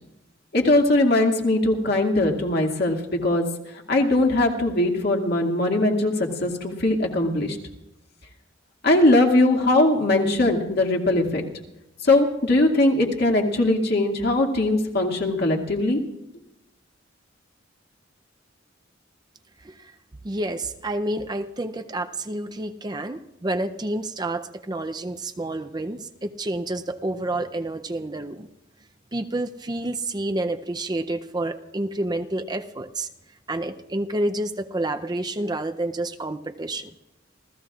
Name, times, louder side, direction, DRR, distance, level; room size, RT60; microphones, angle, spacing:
voice 1, 0.5-3.5 3.9-6.1 6.4-7.6 8.8-11.4 12.0-16.0, left 2 dB, 55° left, 1 dB, 2.1 m, -20 dB
voice 2, 20.2-28.5 29.1-33.1 33.5-36.9, right 1 dB, 20° right, 7 dB, 0.5 m, -29 dB
28.5 x 15.0 x 2.4 m, 0.91 s
head